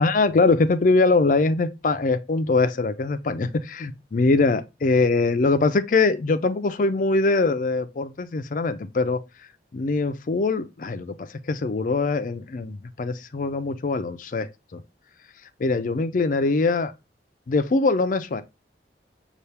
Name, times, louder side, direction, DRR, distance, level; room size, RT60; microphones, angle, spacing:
voice 1, 0.0-9.2 9.7-14.8 15.6-16.9 17.5-18.4, left 3 dB, 50° left, 0.4 m, -22 dB
5.6 x 2.4 x 3.3 m
head